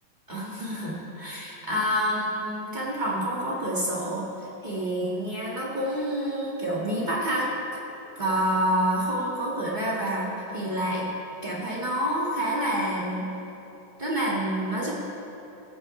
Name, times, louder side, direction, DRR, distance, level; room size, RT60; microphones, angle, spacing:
voice 1, 0.3-7.5 8.1-11.0 11.4-13.2 14.0-14.9, equal, 30° right, -6 dB, 0.8 m, -28 dB
16.0 x 13.5 x 3.3 m, 3.0 s
omnidirectional pair, 4.0 m